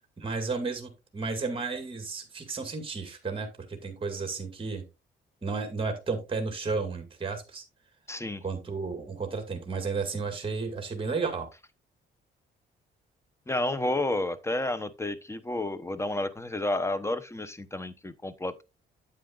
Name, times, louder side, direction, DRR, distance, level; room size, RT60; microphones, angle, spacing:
voice 1, 0.2-4.8 5.4-7.6 8.4-11.5, right 4 dB, 25° right, 2.2 m, -33 dB
voice 2, 8.1-8.4 13.5-18.6, left 2 dB, 15° left, 0.9 m, -31 dB
9.2 x 8.2 x 2.5 m
cardioid pair, 90°, 20 cm